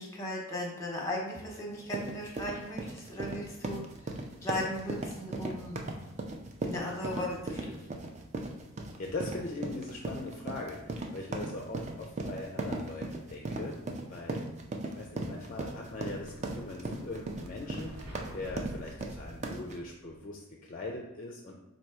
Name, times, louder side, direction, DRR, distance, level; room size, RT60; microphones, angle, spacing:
voice 1, 0.0-5.8 6.6-8.0, left 1 dB, 15° left, -2 dB, 0.9 m, -37 dB
sound 1, 1.7-19.8, right 2 dB, 30° right, 0.4 m, -38 dB
voice 2, 9.0-13.8 14.1-14.4 14.8-21.6, left 2 dB, 35° left, 0 dB, 0.4 m, -41 dB
Explosion, 15.4-20.1, equal, 85° right, 1.4 m, -48 dB
4.2 x 2.7 x 4.7 m, 1.0 s
head